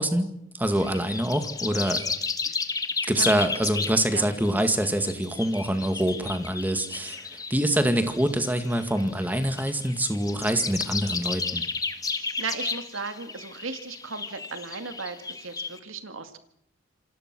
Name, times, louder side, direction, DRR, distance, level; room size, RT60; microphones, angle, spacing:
voice 1, 0.0-2.0 3.1-7.2 7.5-11.6, right 1 dB, 10° right, 8 dB, 2.0 m, -25 dB
sound 1, 0.7-15.8, left 4 dB, 20° left, 1.6 m, -33 dB
voice 2, 12.1-16.4, right 4 dB, 85° right, 8 dB, 2.2 m, -36 dB
27.5 x 25.5 x 6.2 m, 0.75 s
head